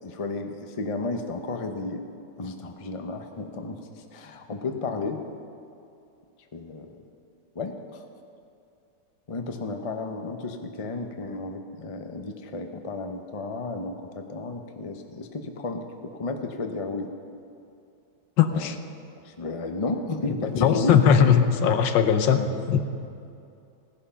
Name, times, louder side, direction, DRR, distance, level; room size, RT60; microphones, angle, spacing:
voice 1, 0.0-2.0 2.4-3.8 4.1-5.2 6.5-7.0 7.5-8.0 9.3-17.1 18.5-18.7 19.2-21.0 21.6-21.7 22.3-22.6, left 3 dB, 35° left, 5 dB, 0.5 m, -32 dB
voice 2, 18.4-18.8 20.6-22.8, left 7 dB, 75° left, 8 dB, 1.5 m, -20 dB
16.5 x 11.0 x 5.7 m, 2.6 s
omnidirectional pair, 2.0 m